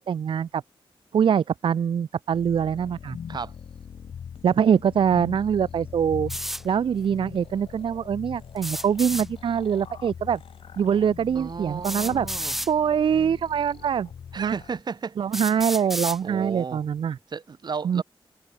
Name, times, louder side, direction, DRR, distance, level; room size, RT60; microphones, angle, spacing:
voice 1, 0.1-0.6 1.1-3.2 4.4-6.3 6.6-10.4 10.8-12.3 12.7-14.1 14.4-14.5 15.2-17.2 17.8-18.0, right 8 dB, 65° right, 0.6 m, -23 dB
sound 1, 2.3-14.8, left 7 dB, 80° left, 6.1 m, -42 dB
sound 2, 6.3-6.6 8.6-9.3 10.7-10.8 11.8-12.7 13.7-13.8 14.5-14.6 15.3-16.2, equal, 5° right, 0.9 m, -31 dB
voice 2, 11.3-12.6 14.3-15.2 16.2-16.8 17.3-18.0, right 5 dB, 50° right, 2.3 m, -34 dB
wide cardioid pair, 120°, 9 cm